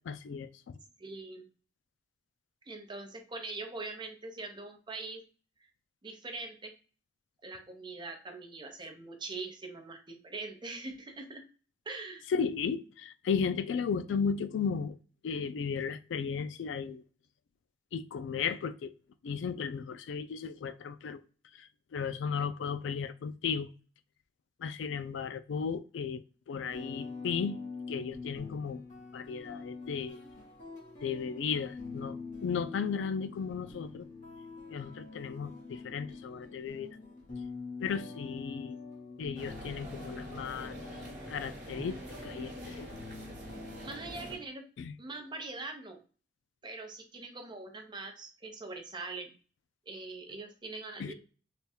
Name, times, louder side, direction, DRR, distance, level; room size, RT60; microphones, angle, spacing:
voice 1, 0.1-0.8 12.3-15.0 15.2-17.0 17.9-18.9 19.2-21.2 21.6-21.7 21.9-23.7 24.6-27.6 27.9-28.8 29.1-30.2 31.0-32.2 32.4-34.1 34.7-36.9 37.8-38.8 39.2-40.8 41.3-42.0 42.2-42.9 44.8-44.9 51.0-51.1, left 6 dB, 80° left, 0.3 m, -35 dB
voice 2, 1.0-1.5 2.7-5.2 6.0-6.7 7.4-11.4 11.9-12.2 38.4-38.8 43.8-44.7 45.0-46.0 46.6-49.3 49.9-51.1, right 3 dB, 25° right, 0.6 m, -42 dB
sound 1, 26.7-44.3, left 4 dB, 45° left, 1.1 m, -45 dB
sound 2, 39.3-44.4, right 1 dB, 45° right, 1.3 m, -45 dB
3.4 x 2.3 x 4.2 m
head